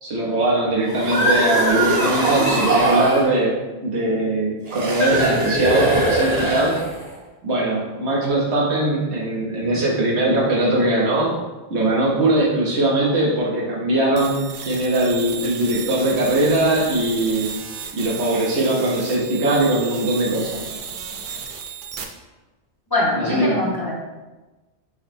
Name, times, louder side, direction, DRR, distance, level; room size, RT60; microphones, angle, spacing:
voice 1, 0.0-6.7 7.4-11.3 11.7-17.5 17.9-20.6 23.1-23.5, right 1 dB, 75° right, -4 dB, 1.4 m, -20 dB
sound 1, 0.8-3.3 4.7-7.1, right 1 dB, 40° right, 0.9 m, -21 dB
sound 2, 14.2-22.0, right 6 dB, 60° right, 0.6 m, -34 dB
voice 2, 22.9-23.9, left 2 dB, 20° left, -4 dB, 0.8 m, -22 dB
5.7 x 2.1 x 4.3 m, 1.2 s
omnidirectional pair, 1.1 m